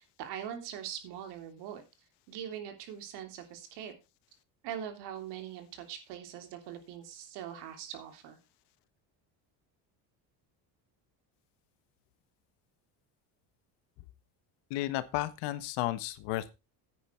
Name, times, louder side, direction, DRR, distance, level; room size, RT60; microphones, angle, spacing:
voice 1, 0.0-1.8 2.3-3.9 4.6-8.4, right 9 dB, 80° right, 6 dB, 3.3 m, -42 dB
voice 2, 14.7-16.5, left 15 dB, 85° left, 13 dB, 1.4 m, -33 dB
9.6 x 9.6 x 4.5 m, 0.27 s
cardioid pair, 145°, 40 cm